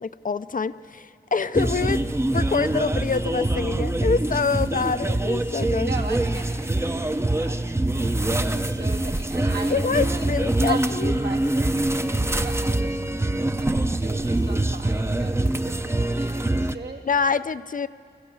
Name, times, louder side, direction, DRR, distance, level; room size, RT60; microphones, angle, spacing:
voice 1, 0.0-5.9 9.7-11.1 17.0-17.9, left 5 dB, 50° left, 13 dB, 0.5 m, -26 dB
sound 1, 1.5-16.8, right 1 dB, 15° right, 0.6 m, -24 dB
voice 2, 5.8-10.3 10.6-12.1 12.4-17.0, right 3 dB, 85° right, -2 dB, 2.7 m, -38 dB
24.0 x 14.5 x 8.6 m, 2.2 s
wide cardioid pair, 65°, 18 cm